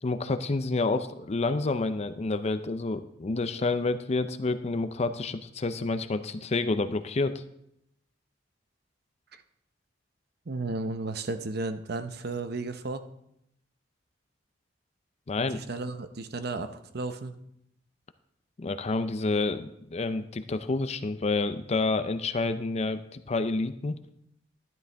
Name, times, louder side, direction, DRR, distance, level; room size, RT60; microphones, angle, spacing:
voice 1, 0.0-7.4 15.3-15.6 18.6-24.0, left 3 dB, 35° left, 10 dB, 0.5 m, -29 dB
voice 2, 10.5-13.1 15.5-17.3, right 3 dB, 60° right, 9 dB, 0.8 m, -34 dB
12.5 x 10.5 x 3.4 m, 0.78 s
head